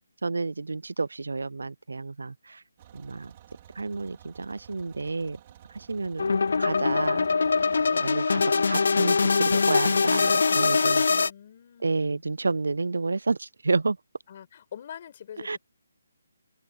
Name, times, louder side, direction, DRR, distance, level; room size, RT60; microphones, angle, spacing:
voice 1, 0.2-2.6 2.9-3.3 3.8-5.4 5.7-6.3 6.6-7.3 8.0-8.4 8.7-11.0 11.8-14.0 15.4-15.6, right 3 dB, 90° right, 0.5 m, -30 dB
sound 1, 2.8-8.0, right 12 dB, 25° right, 4.6 m, -53 dB
sound 2, 6.2-11.3, left 4 dB, 55° left, 0.4 m, -23 dB
voice 2, 6.9-7.3 7.8-8.2 11.1-12.2 14.3-15.6, left 9 dB, 30° left, 5.0 m, -45 dB
hypercardioid pair, 175°, 0 cm